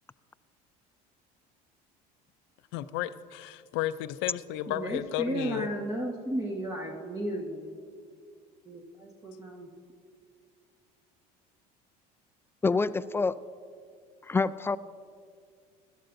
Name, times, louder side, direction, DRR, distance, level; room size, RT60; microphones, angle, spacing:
voice 1, 2.7-5.9, left 13 dB, 65° left, 14 dB, 0.5 m, -33 dB
voice 2, 4.7-7.8 8.7-9.7, right 1 dB, 20° right, -1 dB, 1.4 m, -34 dB
voice 3, 12.6-13.3 14.3-14.8, left 4 dB, 10° left, 15 dB, 0.3 m, -26 dB
17.0 x 12.5 x 2.6 m, 2.2 s
hypercardioid pair, 85°, 20 cm